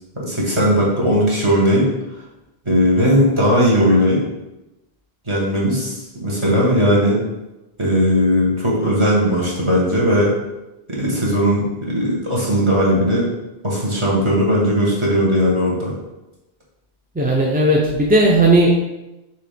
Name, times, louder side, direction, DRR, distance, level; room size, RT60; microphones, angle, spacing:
voice 1, 0.1-1.9 2.7-4.2 5.3-7.2 7.8-10.3 10.9-13.3 13.6-15.9, equal, 25° right, -5 dB, 1.7 m, -17 dB
voice 2, 17.2-18.7, right 1 dB, 10° right, -3 dB, 0.6 m, -15 dB
6.6 x 3.0 x 5.1 m, 0.99 s
omnidirectional pair, 1.1 m